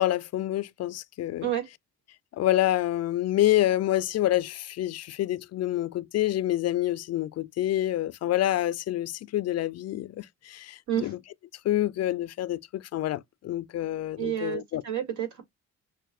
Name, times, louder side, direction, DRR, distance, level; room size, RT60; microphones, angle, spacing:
voice 1, 0.0-1.5 2.3-11.2 11.6-14.8, left 13 dB, 60° left, 0.4 m, -27 dB
voice 2, 14.2-15.4, right 10 dB, 70° right, 2.1 m, -30 dB
6.4 x 2.4 x 2.4 m
cardioid pair, 90°, 30 cm